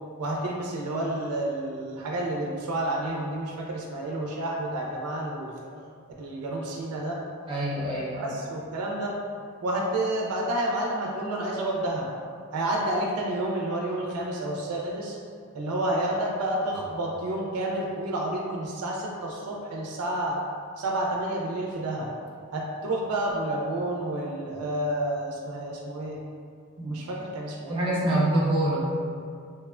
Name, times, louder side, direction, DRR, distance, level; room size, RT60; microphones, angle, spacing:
voice 1, 0.2-5.5 6.2-7.2 8.2-9.2 9.6-12.1 12.5-15.2 15.5-20.4 20.8-22.1 22.5-26.2 26.8-27.9, right 1 dB, 75° right, -1 dB, 0.4 m, -30 dB
voice 2, 7.5-8.3 26.8-27.0 27.7-28.8, right 1 dB, 25° right, -6 dB, 0.5 m, -25 dB
2.9 x 2.1 x 2.3 m, 2.2 s
head